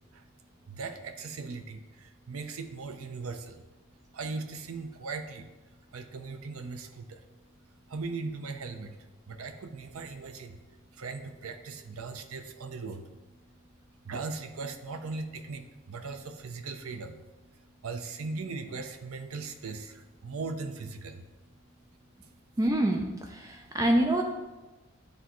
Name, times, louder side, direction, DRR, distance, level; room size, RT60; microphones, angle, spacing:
voice 1, 0.7-3.6 4.1-5.5 5.9-7.2 7.9-9.0 9.3-10.6 10.9-13.1 14.0-17.2 17.5-21.3 22.2-22.3, right 4 dB, 80° right, 8 dB, 0.6 m, -39 dB
voice 2, 22.6-24.2, right 1 dB, 15° right, 2 dB, 0.3 m, -26 dB
9.6 x 3.4 x 3.0 m, 1.1 s
head